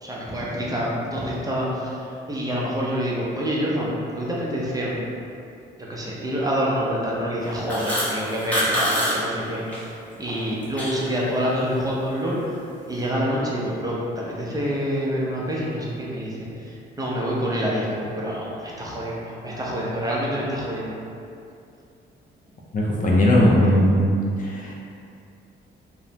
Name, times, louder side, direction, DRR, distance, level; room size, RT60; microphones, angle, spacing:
voice 1, 0.0-5.0 5.8-12.6 12.9-20.9, equal, 20° right, -5 dB, 0.5 m, -27 dB
sound 1, 7.4-9.8 10.2-11.1, equal, 5° left, 0.9 m, -25 dB
voice 2, 22.7-24.1 24.4-24.7, left 1 dB, 40° left, -3 dB, 0.5 m, -18 dB
3.0 x 2.0 x 2.7 m, 2.5 s
cardioid pair, 90°, 20 cm